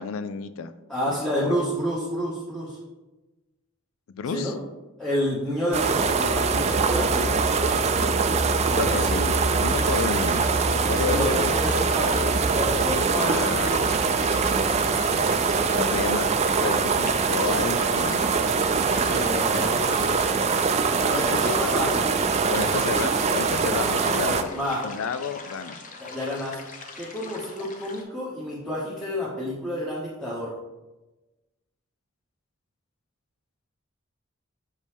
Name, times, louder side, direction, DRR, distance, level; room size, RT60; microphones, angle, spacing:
voice 1, 0.0-0.7 1.1-1.6 4.1-4.5 8.7-11.5 13.2-15.2 15.7-16.3 16.6-18.3 21.3-21.4 22.5-24.5 24.8-25.8, left 5 dB, 80° left, 12 dB, 0.4 m, -31 dB
voice 2, 0.9-2.8 4.3-4.5 5.0-7.4 8.6-9.0 11.1-13.8 19.0-20.3 21.0-22.1 24.5-24.9 26.0-26.5 27.0-30.5, left 1 dB, 5° left, -9 dB, 1.1 m, -29 dB
sound 1, 5.7-24.4, right 4 dB, 30° right, 0.4 m, -23 dB
sound 2, 9.6-28.0, left 3 dB, 40° left, 0.7 m, -42 dB
6.5 x 5.3 x 3.4 m, 1.1 s
head